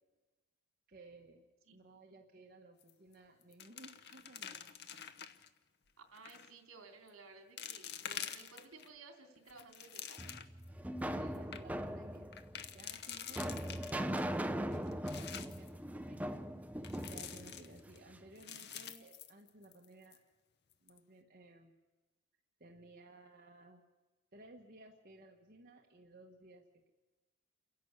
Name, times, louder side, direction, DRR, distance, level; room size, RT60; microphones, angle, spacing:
voice 1, 0.9-1.5 1.7-4.7 11.0-12.4 12.7-16.4 17.0-20.2 20.8-21.7 22.6-23.8 24.3-26.9, right 2 dB, 40° right, 0 dB, 1.6 m, -58 dB
sound 1, 2.8-3.1 3.4-5.5 6.1-6.5 7.1-7.2 7.6-8.9 9.4-10.6 11.0-11.1 11.3-11.6 12.3-14.2 14.7-15.7 16.8-18.0 18.4-19.9 20.1-20.2 20.7-21.0, left 9 dB, 50° left, 1.0 m, -47 dB
voice 2, 6.1-10.3, right 4 dB, 70° right, 5 dB, 3.2 m, -56 dB
sound 2, 10.2-18.3, equal, 5° right, 0.6 m, -40 dB
29.5 x 11.5 x 8.3 m, 1.2 s
head